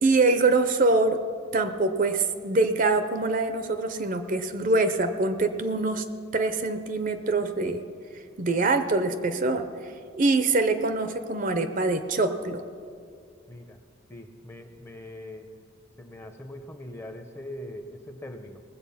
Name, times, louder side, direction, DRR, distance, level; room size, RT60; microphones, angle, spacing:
voice 1, 0.0-1.2 1.5-6.0 6.3-7.9 8.4-9.7 10.2-12.6, right 3 dB, 40° right, 9 dB, 0.6 m, -24 dB
voice 2, 13.5-13.8 14.1-15.5 16.0-18.6, left 1 dB, 15° left, 7 dB, 0.7 m, -41 dB
19.5 x 7.8 x 5.7 m, 2.3 s
head